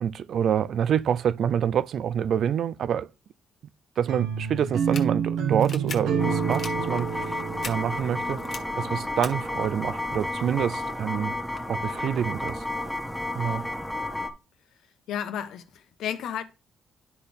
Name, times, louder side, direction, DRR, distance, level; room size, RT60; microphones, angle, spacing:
voice 1, 0.0-3.1 4.0-8.4 8.8-11.4 11.7-12.6 13.3-13.7, right 8 dB, 65° right, 0.4 m, -27 dB
sound 1, 4.1-9.2, right 7 dB, 85° right, 1.1 m, -29 dB
sound 2, 4.7-5.0 5.6-6.0 6.5-6.7 7.6-7.7 8.4-8.6 9.2-9.3, left 5 dB, 55° left, 1.5 m, -36 dB
sound 3, 6.2-14.3, left 1 dB, ahead, 1.3 m, -32 dB
voice 2, 15.1-16.4, left 9 dB, 80° left, 1.0 m, -32 dB
12.0 x 4.2 x 3.4 m
cardioid pair, 90°, 0 cm